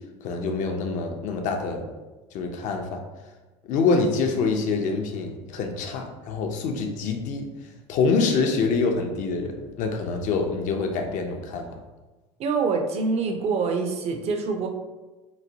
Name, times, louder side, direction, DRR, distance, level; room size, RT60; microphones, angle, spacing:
voice 1, 0.2-1.8 2.3-3.0 3.7-7.5 7.9-11.8, left 4 dB, 55° left, 4 dB, 0.5 m, -25 dB
voice 2, 12.4-14.7, right 4 dB, 45° right, 4 dB, 0.5 m, -25 dB
3.0 x 2.1 x 2.7 m, 1.2 s
hypercardioid pair, 80°, 15 cm